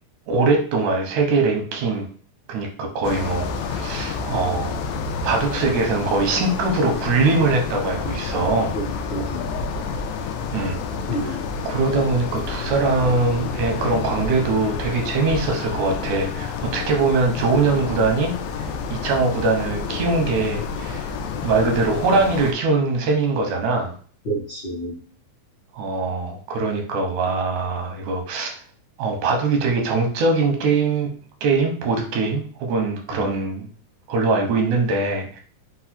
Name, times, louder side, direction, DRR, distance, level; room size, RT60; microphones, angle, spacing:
voice 1, 0.3-2.1 2.5-4.8 5.2-8.8 10.5-10.8 11.2-11.4 11.7-18.3 18.6-21.1 21.4-23.9 25.7-28.5 29.0-31.1 31.4-33.7 34.1-35.4, right 3 dB, 90° right, 2 dB, 2.3 m, -22 dB
sound 1, 3.0-22.5, left 5 dB, 80° left, 1.6 m, -29 dB
voice 2, 8.7-9.5 11.1-11.4 24.2-24.9 33.2-33.3, right 2 dB, 65° left, -6 dB, 1.1 m, -29 dB
5.3 x 2.3 x 4.3 m, 0.43 s
omnidirectional pair, 3.4 m